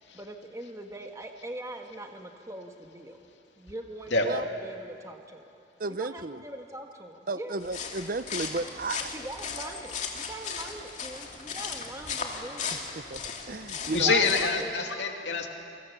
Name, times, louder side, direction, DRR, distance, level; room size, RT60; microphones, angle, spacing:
voice 1, 0.1-3.2 3.6-5.5 5.9-7.5 9.1-12.8 13.9-14.7, right 1 dB, 20° right, 3 dB, 1.5 m, -42 dB
voice 2, 5.8-6.4 7.3-9.1 13.0-13.2 13.5-14.3, right 3 dB, 50° right, 13 dB, 0.7 m, -33 dB
sound 1, 7.6-14.6, left 5 dB, 40° left, 2.4 m, -37 dB
voice 3, 13.9-15.5, left 4 dB, 85° left, 2 dB, 2.8 m, -26 dB
28.5 x 24.5 x 7.2 m, 2.6 s
head